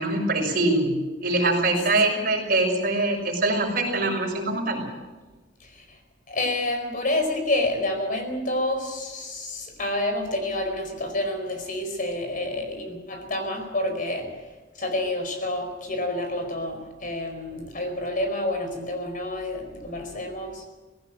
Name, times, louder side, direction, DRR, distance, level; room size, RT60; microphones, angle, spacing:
voice 1, 0.0-4.8, right 2 dB, 55° right, 1 dB, 6.1 m, -23 dB
voice 2, 5.6-6.0 6.3-14.5 14.7-20.6, left 1 dB, 45° left, 5 dB, 4.7 m, -29 dB
19.0 x 17.0 x 9.2 m, 1.2 s
head